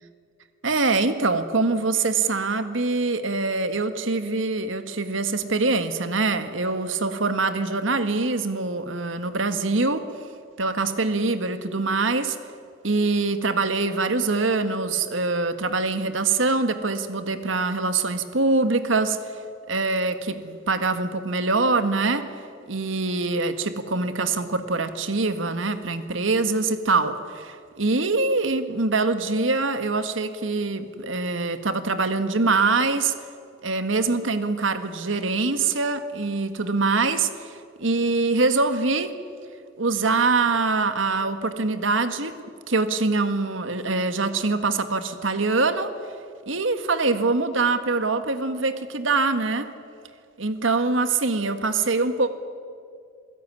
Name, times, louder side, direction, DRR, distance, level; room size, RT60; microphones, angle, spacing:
voice 1, 0.6-10.1 10.6-12.4 12.8-19.3 19.7-22.3 22.7-33.1 33.6-39.1 39.8-42.4 42.7-45.9 46.5-49.7 50.4-52.3, right 3 dB, 85° right, 10 dB, 1.7 m, -24 dB
27.5 x 16.5 x 9.8 m, 2.3 s
head